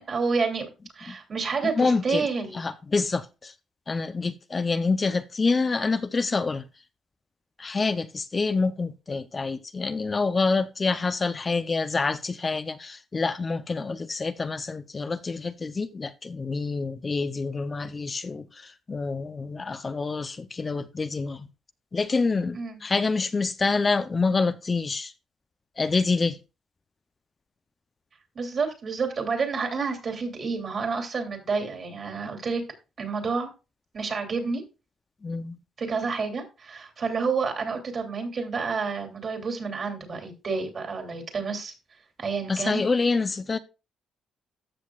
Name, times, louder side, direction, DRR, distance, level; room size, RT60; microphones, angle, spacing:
voice 1, 0.1-2.6 22.5-22.8 28.3-32.6 33.0-33.5 33.9-34.6 35.8-41.7 42.2-42.8, right 4 dB, 45° right, 2.9 m, -29 dB
voice 2, 1.7-2.3 2.5-3.5 3.9-6.7 7.6-21.5 21.9-25.1 25.8-26.4 35.2-35.6 42.5-43.6, left 4 dB, 30° left, 0.6 m, -27 dB
14.0 x 6.3 x 2.4 m
cardioid pair, 90°, 0 cm